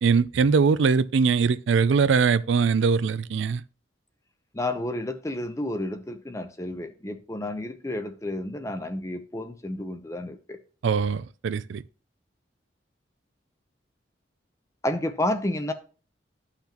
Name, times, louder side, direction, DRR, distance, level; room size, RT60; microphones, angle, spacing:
voice 1, 0.0-3.6 10.8-11.8, right 5 dB, 80° right, 0.4 m, -22 dB
voice 2, 4.5-10.6 14.8-15.7, left 1 dB, 15° left, 0.6 m, -31 dB
12.0 x 5.8 x 2.9 m
head